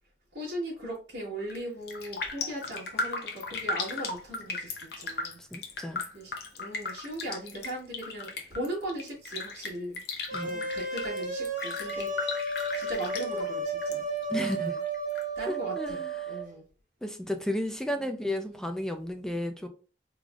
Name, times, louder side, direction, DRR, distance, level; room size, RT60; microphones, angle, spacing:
voice 1, 0.3-5.7 6.1-10.0 10.4-12.1 12.5-14.8 15.3-16.6 17.9-18.6, right 1 dB, 75° right, 1.7 m, -39 dB
Raindrop, 1.4-1.6 1.9-14.0 14.2-15.2 15.6-15.7, left 3 dB, 65° left, 0.8 m, -36 dB
voice 2, 5.4-6.0 10.3-10.6 14.3-14.7 15.5-16.4 17.0-19.7, left 1 dB, 5° left, 0.4 m, -33 dB
sound 1, 10.3-16.4, right 3 dB, 45° right, 1.6 m, -33 dB
3.8 x 3.2 x 2.4 m
head